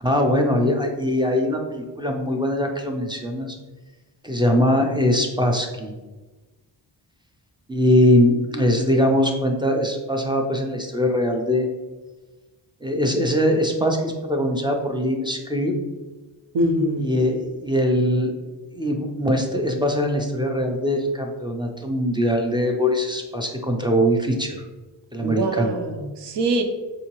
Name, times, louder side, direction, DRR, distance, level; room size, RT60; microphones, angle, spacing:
voice 1, 0.0-3.6 4.2-5.9 7.7-11.7 12.8-15.7 17.0-18.3 18.7-24.6 25.1-25.8, equal, 10° right, 2 dB, 0.3 m, -22 dB
voice 2, 16.5-17.1 25.2-26.6, right 1 dB, 65° right, 5 dB, 0.6 m, -23 dB
4.5 x 2.7 x 2.9 m, 1.2 s
wide cardioid pair, 105°, 44 cm